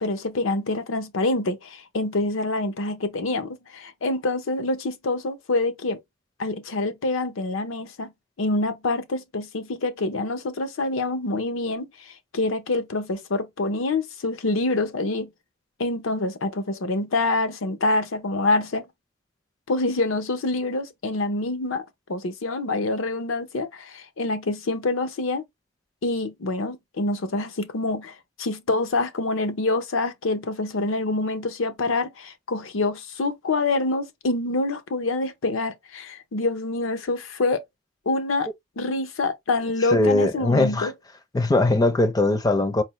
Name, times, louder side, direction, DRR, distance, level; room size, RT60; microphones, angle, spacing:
voice 1, 0.0-6.0 6.4-8.1 8.4-15.3 15.8-18.9 19.7-25.4 26.0-37.6 38.1-38.5 38.8-40.9, left 2 dB, 80° left, 0.7 m, -26 dB
voice 2, 39.9-40.9 41.3-42.8, left 2 dB, 20° left, 0.4 m, -20 dB
4.2 x 2.1 x 3.0 m
head